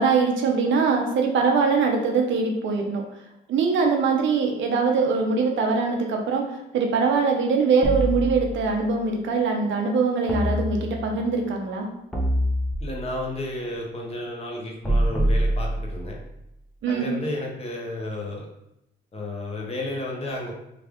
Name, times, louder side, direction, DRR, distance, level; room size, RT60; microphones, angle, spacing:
voice 1, 0.0-3.0 3.5-11.9 16.8-17.1, right 4 dB, 70° right, 2 dB, 0.7 m, -22 dB
sound 1, 7.8-8.9 10.3-11.3 12.1-13.2 14.8-16.3, equal, 5° left, 0.8 m, -25 dB
voice 2, 12.8-16.2 16.9-18.5 19.1-20.5, left 1 dB, 30° left, -1 dB, 1.0 m, -32 dB
3.3 x 2.4 x 3.5 m, 0.85 s
cardioid pair, 90°, 20 cm